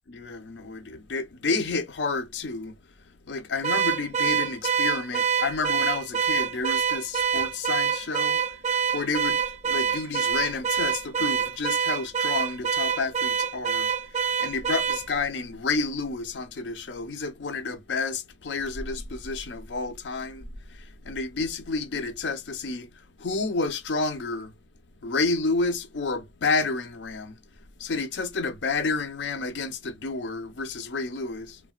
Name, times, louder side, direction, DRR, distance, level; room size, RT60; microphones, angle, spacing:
voice 1, 0.1-2.7 3.1-24.5 25.0-27.4 27.8-31.7, left 3 dB, 85° left, 0.6 m, -30 dB
Car / Alarm, 3.6-15.1, right 7 dB, 40° right, 0.4 m, -26 dB
3.2 x 2.2 x 2.3 m
head